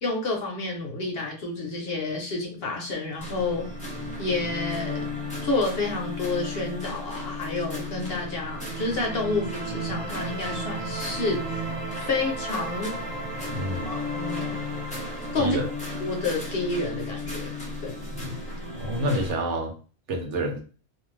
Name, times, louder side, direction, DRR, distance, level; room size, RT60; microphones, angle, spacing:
voice 1, 0.0-3.7 4.2-5.1 5.4-11.7 12.1-13.0 13.8-14.6 15.3-15.6 16.0-18.0, left 3 dB, 60° left, 1 dB, 0.9 m, -29 dB
sound 1, 3.2-19.3, equal, 5° left, 0.7 m, -34 dB
voice 2, 13.5-13.9 15.3-15.7 18.1-18.4 18.8-19.7 20.1-20.6, equal, 70° right, 2 dB, 1.0 m, -28 dB
2.5 x 2.3 x 3.1 m, 0.37 s
omnidirectional pair, 1.3 m